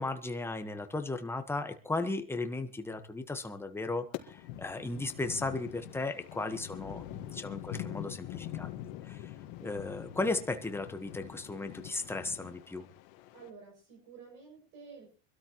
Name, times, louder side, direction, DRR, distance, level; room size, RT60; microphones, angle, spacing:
voice 1, 0.0-8.7 9.0-9.3 9.6-12.9, left 2 dB, 5° left, 7 dB, 1.3 m, -36 dB
sound 1, 4.1-13.5, left 12 dB, 70° left, 1.8 m, -44 dB
voice 2, 13.3-15.2, right 5 dB, 65° right, -2 dB, 7.8 m, -51 dB
25.5 x 13.0 x 3.1 m, 0.35 s
supercardioid pair, 135°, 34 cm